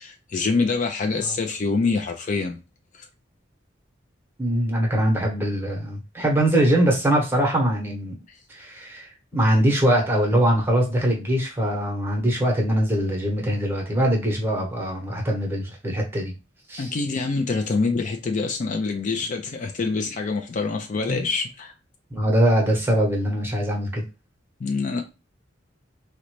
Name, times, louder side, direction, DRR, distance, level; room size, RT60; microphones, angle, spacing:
voice 1, 0.0-2.6 3.0-3.1 16.8-21.7 24.6-25.0, left 4 dB, 40° left, 0.4 m, -25 dB
voice 2, 4.4-8.1 8.5-16.3 16.7-16.9 21.1-21.3 22.1-24.0, equal, 10° right, 0.9 m, -22 dB
3.8 x 2.1 x 3.0 m
head